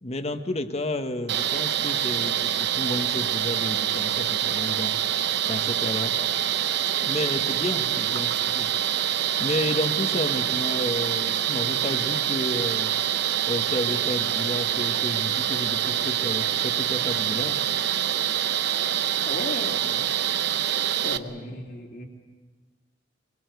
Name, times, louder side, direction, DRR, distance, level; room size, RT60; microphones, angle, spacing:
voice 1, 0.0-5.0 5.5-6.2 7.0-8.7 9.4-12.9 13.5-17.6, left 1 dB, 35° left, 8 dB, 1.4 m, -31 dB
sound 1, 1.3-21.2, right 10 dB, 65° right, 0.9 m, -25 dB
voice 2, 19.2-20.1 21.0-22.1, left 2 dB, 55° left, 0 dB, 2.6 m, -35 dB
23.0 x 22.5 x 8.0 m, 1.4 s
head